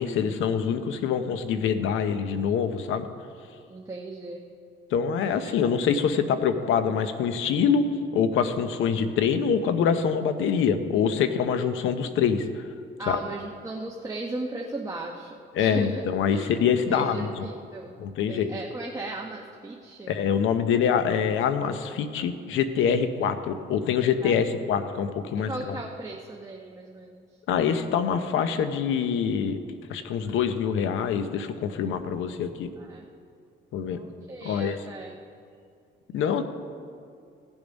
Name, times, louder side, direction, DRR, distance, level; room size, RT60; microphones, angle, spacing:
voice 1, 0.0-3.1 4.9-12.7 13.1-13.2 15.5-17.5 18.0-18.5 20.1-25.8 27.5-29.6 29.9-32.7 33.7-34.0 34.4-34.8 36.1-36.4, left 7 dB, 85° left, 10 dB, 0.8 m, -25 dB
voice 2, 3.7-4.4 5.4-5.5 13.0-16.0 16.3-16.5 16.9-17.9 18.3-20.2 24.2-24.9 25.3-27.2 32.0-32.1 32.8-33.1 33.8-35.1, right 2 dB, 15° right, -1 dB, 1.1 m, -37 dB
17.0 x 7.1 x 5.3 m, 2.4 s
cardioid pair, 90°, 20 cm